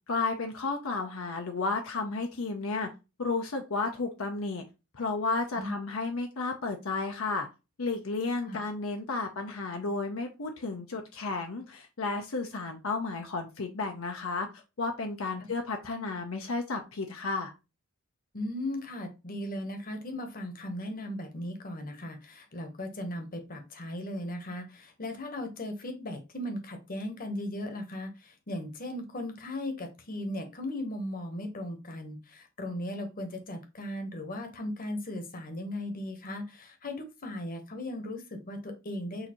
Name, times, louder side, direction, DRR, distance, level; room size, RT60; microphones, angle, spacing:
voice 1, 0.1-2.9 3.2-4.6 4.9-7.5 7.8-17.5, left 3 dB, 75° left, 4 dB, 0.7 m, -32 dB
voice 2, 18.3-39.3, left 1 dB, 45° left, 6 dB, 1.1 m, -37 dB
6.4 x 2.7 x 3.0 m, 0.27 s
head